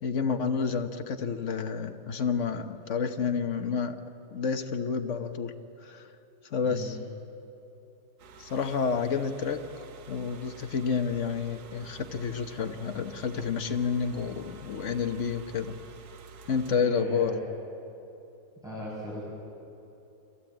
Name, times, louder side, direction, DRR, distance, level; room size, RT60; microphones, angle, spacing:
voice 1, 0.0-4.0 4.3-5.5 5.8-6.1 6.5-7.0 8.4-9.6 10.1-15.8 16.5-17.3, left 6 dB, 50° left, 7 dB, 1.2 m, -29 dB
sound 1, 8.2-16.8, right 4 dB, 70° right, 1.6 m, -49 dB
voice 2, 16.8-17.4 18.6-19.2, equal, ahead, -7 dB, 6.3 m, -37 dB
25.0 x 16.0 x 8.8 m, 3.0 s
omnidirectional pair, 1.8 m